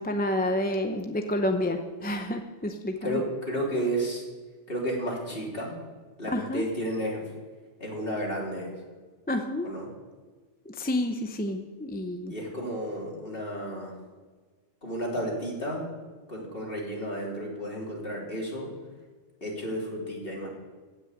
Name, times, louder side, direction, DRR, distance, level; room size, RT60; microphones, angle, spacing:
voice 1, 0.0-3.2 6.3-6.6 9.3-9.7 10.7-12.3, left 1 dB, 10° left, 5 dB, 0.6 m, -29 dB
voice 2, 3.0-4.2 4.7-5.8 6.2-7.2 7.8-8.7 9.6-9.9 12.3-14.0 14.8-15.9 16.3-18.7 19.4-20.5, equal, 45° left, -3 dB, 3.7 m, -32 dB
16.5 x 6.4 x 8.0 m, 1.4 s
omnidirectional pair, 1.3 m